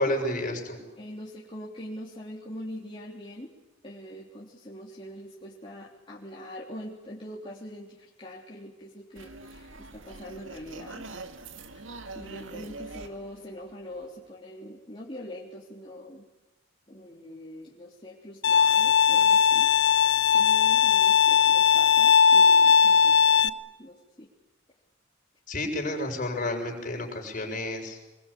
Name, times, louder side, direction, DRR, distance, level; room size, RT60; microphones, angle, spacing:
voice 1, 0.0-0.8 25.5-28.0, left 1 dB, 40° left, 2 dB, 6.9 m, -30 dB
voice 2, 1.0-3.6 3.8-11.1 12.1-16.3 16.9-19.7 20.3-24.3, equal, 25° left, -5 dB, 3.5 m, -43 dB
sound 1, 9.2-14.3, right 3 dB, 80° right, 1.9 m, -44 dB
Bowed string instrument, 18.4-23.5, left 7 dB, 60° left, 1.1 m, -19 dB
25.5 x 22.5 x 8.6 m, 1.1 s
head